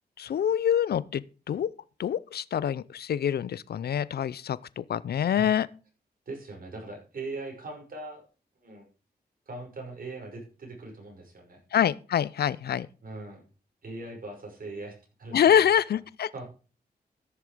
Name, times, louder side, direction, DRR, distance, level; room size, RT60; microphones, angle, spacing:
voice 1, 0.2-1.7 2.0-5.7 11.7-12.9 15.3-16.3, left 9 dB, 70° left, 0.6 m, -25 dB
voice 2, 6.3-8.3 8.6-8.9 9.5-11.6 13.0-13.4 13.8-15.6 16.3-16.5, right 2 dB, 60° right, 5.9 m, -40 dB
14.0 x 6.7 x 5.0 m
cardioid pair, 70°, 17 cm